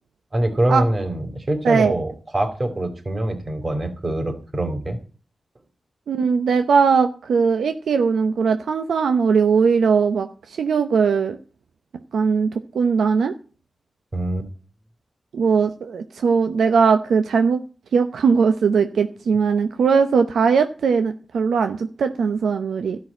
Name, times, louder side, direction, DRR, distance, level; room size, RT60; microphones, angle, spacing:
voice 1, 0.3-5.0 14.1-14.5, right 1 dB, 40° right, 6 dB, 3.9 m, -24 dB
voice 2, 6.1-11.4 12.1-13.3 15.3-17.6 17.9-23.0, right 5 dB, 85° right, 8 dB, 0.8 m, -19 dB
13.0 x 6.3 x 8.6 m, 0.39 s
cardioid pair, 45°, 0 cm